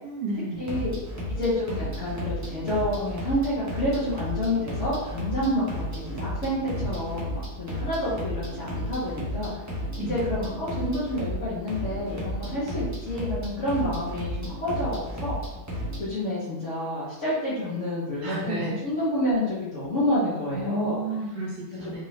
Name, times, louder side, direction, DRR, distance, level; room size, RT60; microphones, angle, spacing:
voice 1, 0.0-0.6 10.0-10.2 18.2-18.8 20.5-22.0, right 2 dB, 90° right, -4 dB, 1.5 m, -31 dB
sound 1, 0.5-16.0, equal, 15° right, 0.7 m, -33 dB
voice 2, 0.6-0.9 1.3-9.5 10.1-15.3 16.0-21.0 21.8-22.0, left 1 dB, 50° left, -11 dB, 1.7 m, -29 dB
4.7 x 3.8 x 2.6 m, 0.99 s
omnidirectional pair, 1.7 m